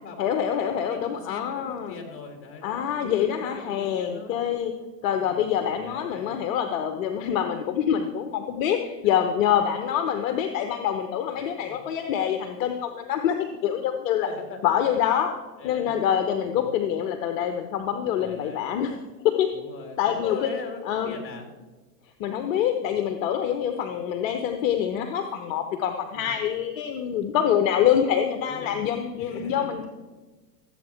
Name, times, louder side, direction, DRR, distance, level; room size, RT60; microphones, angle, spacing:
voice 1, 0.2-2.0 2.6-4.7 5.0-14.3 14.6-15.3 15.6-18.9 19.2-19.5 20.0-20.5 20.8-21.2 22.2-29.9, left 9 dB, 50° left, 7 dB, 1.0 m, -25 dB
voice 2, 0.7-4.3 5.2-6.4 9.1-9.3 10.2-10.4 11.3-11.8 14.2-15.1 15.6-16.1 16.4-16.8 18.1-18.7 19.5-21.5 23.9-24.0 26.1-26.3 28.5-28.8 29.2-29.7, left 4 dB, 25° left, 3 dB, 2.8 m, -41 dB
15.5 x 8.1 x 4.4 m, 1.3 s
hypercardioid pair, 125°, 50 cm